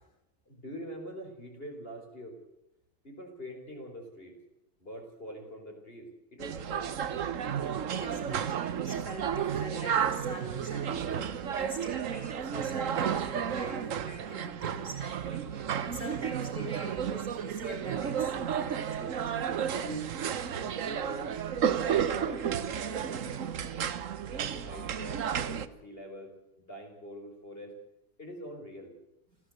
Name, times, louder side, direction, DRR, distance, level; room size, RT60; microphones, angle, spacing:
voice 1, 0.5-2.4 3.0-4.3 4.8-7.2 19.8-20.1 20.5-21.3 21.8-23.8 24.2-27.7 28.2-29.0, equal, 25° left, 2 dB, 4.8 m, -44 dB
sound 1, 6.4-25.7, right 8 dB, 50° right, 1.0 m, -32 dB
voice 2, 7.6-19.4, right 2 dB, 35° right, 2 dB, 2.7 m, -43 dB
27.5 x 15.0 x 8.0 m, 0.91 s
omnidirectional pair, 2.2 m